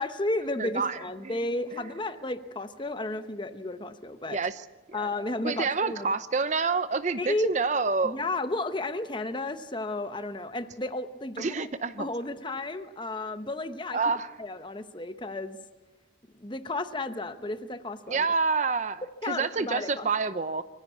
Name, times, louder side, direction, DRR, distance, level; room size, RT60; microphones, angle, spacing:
voice 1, 0.0-4.4 4.9-6.1 7.2-7.5 8.0-11.7 12.0-14.0 14.4-15.6 16.4-18.3 19.2-20.1, left 2 dB, 25° left, 10 dB, 0.9 m, -33 dB
voice 2, 0.6-1.4 1.7-1.8 4.3-4.6 4.9-5.1 5.4-8.2 11.4-12.1 13.9-14.3 18.1-20.6, right 4 dB, 40° right, 13 dB, 0.6 m, -28 dB
24.5 x 15.5 x 8.3 m, 1.3 s
head